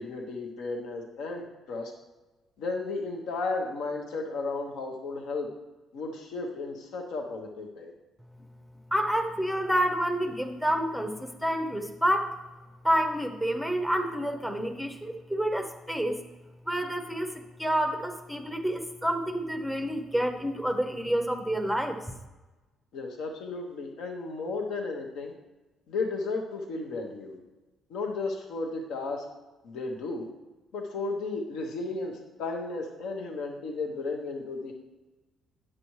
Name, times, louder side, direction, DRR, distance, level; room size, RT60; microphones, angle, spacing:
voice 1, 0.0-1.9 2.6-5.5 5.9-7.9 22.9-25.3 25.9-27.4 27.9-29.2 29.6-30.3 30.7-34.7, left 3 dB, 80° left, 2 dB, 1.0 m, -34 dB
voice 2, 8.9-12.3 12.8-16.2 16.7-22.0, equal, ahead, 4 dB, 0.6 m, -28 dB
9.7 x 7.6 x 3.1 m, 1.1 s
cardioid pair, 120°, 0 cm